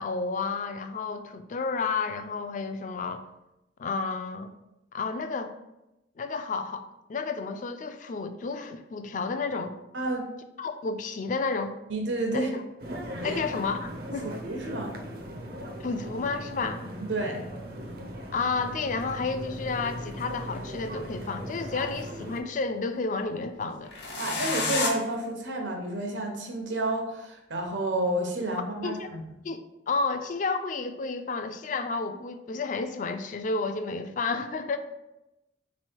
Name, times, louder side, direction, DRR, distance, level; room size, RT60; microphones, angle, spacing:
voice 1, 0.0-3.2 3.8-4.5 4.9-5.5 6.2-9.7 10.6-11.7 12.3-12.6 13.2-14.3 15.8-16.8 18.3-23.9 28.8-29.1 29.4-34.8, left 4 dB, 45° left, 9 dB, 0.3 m, -31 dB
voice 2, 9.9-10.3 11.9-12.5 13.2-13.4 14.4-14.9 17.0-17.4 24.1-29.2, right 1 dB, 90° right, 1 dB, 0.9 m, -30 dB
sound 1, 12.8-22.4, equal, 55° right, 0.5 m, -38 dB
sound 2, 18.7-18.8 20.0-21.1 23.8-24.9, left 3 dB, 70° left, 1.0 m, -30 dB
3.6 x 3.1 x 4.3 m, 0.93 s
head